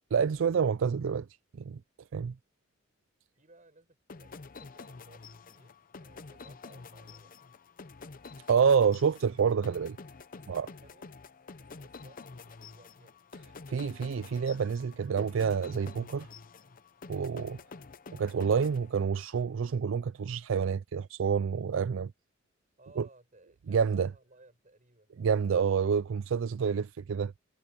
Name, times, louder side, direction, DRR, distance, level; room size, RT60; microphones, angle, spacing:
voice 1, 0.1-1.3 1.5-1.8 2.1-2.3 8.5-10.0 10.5-10.7 13.7-16.3 17.1-17.6 18.1-22.1 23.0-23.1 23.7-24.1 25.2-27.3, right 6 dB, 65° right, 0.4 m, -28 dB
voice 2, 3.4-7.3 10.3-11.1 11.6-13.2 22.8-25.2, right 2 dB, 40° right, 6.4 m, -60 dB
sound 1, 4.1-19.4, left 4 dB, 45° left, 0.7 m, -49 dB
head